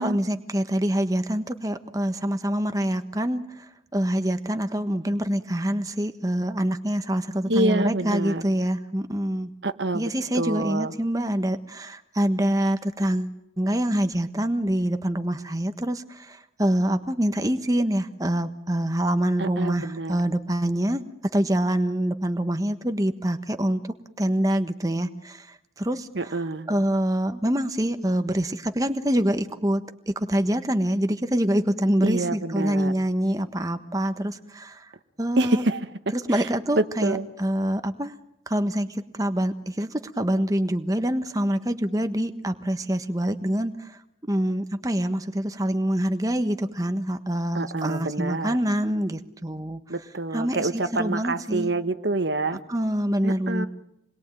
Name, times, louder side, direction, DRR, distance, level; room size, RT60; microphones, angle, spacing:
voice 1, 0.0-9.5 9.9-21.0 21.3-23.8 24.2-26.4 26.7-34.9 35.2-35.6 36.1-38.2 38.5-49.8 50.3-51.7 52.7-53.7, right 1 dB, 20° right, 8 dB, 1.3 m, -25 dB
voice 2, 7.5-8.4 9.6-10.1 10.3-10.9 19.4-20.2 26.1-26.7 32.0-32.9 35.4-35.8 36.3-36.5 36.8-37.3 47.5-48.6 49.9-52.6 53.2-53.7, right 2 dB, 70° right, 10 dB, 1.4 m, -27 dB
28.5 x 21.5 x 9.1 m, 0.83 s
head